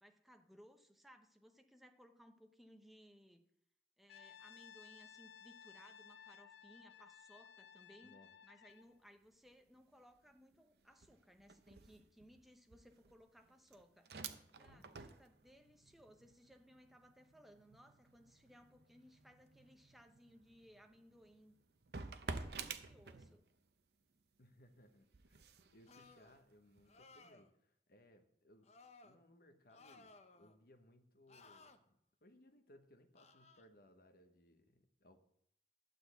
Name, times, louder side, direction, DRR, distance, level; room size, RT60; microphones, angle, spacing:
voice 1, 0.0-3.5 4.0-21.6 22.2-23.4, equal, ahead, 5 dB, 0.8 m, -64 dB
Brass instrument, 4.1-8.9, left 8 dB, 75° left, 0.5 m, -59 dB
sound 1, 8.7-9.0 9.3-23.7 24.1-27.2, right 4 dB, 60° right, 0.7 m, -53 dB
voice 2, 14.6-14.9 24.4-28.7 29.0-31.8 32.2-35.3, left 1 dB, 55° left, 7 dB, 1.0 m, -66 dB
sound 2, 25.9-26.4 26.9-27.5 28.6-29.2 29.7-30.6 31.3-31.8 33.2-33.6, left 3 dB, 40° left, 0.7 m, -61 dB
12.0 x 4.0 x 8.0 m, 0.72 s
head